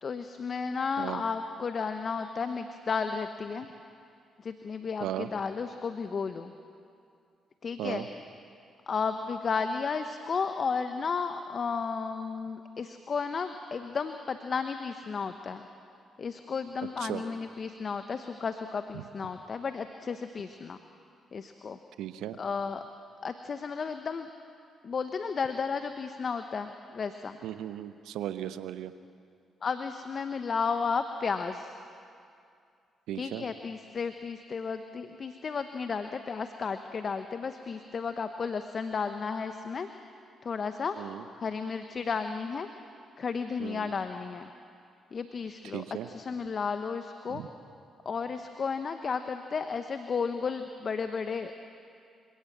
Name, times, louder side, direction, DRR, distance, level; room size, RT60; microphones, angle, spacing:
voice 1, 0.0-3.7 4.4-6.5 7.6-8.1 8.9-15.7 16.2-20.8 21.3-21.8 22.4-22.8 23.2-24.3 24.8-27.4 29.6-31.7 33.1-39.9 40.4-41.0 41.3-42.7 43.2-44.5 45.1-47.4 48.0-51.5, left 5 dB, 50° left, 8 dB, 1.0 m, -33 dB
voice 2, 22.0-22.4 27.4-28.9 33.1-33.4 41.0-41.2 43.6-43.9 45.7-46.1 47.3-47.5, right 12 dB, 75° right, 12 dB, 0.9 m, -36 dB
27.5 x 17.0 x 7.3 m, 2.4 s
hypercardioid pair, 45°, 0 cm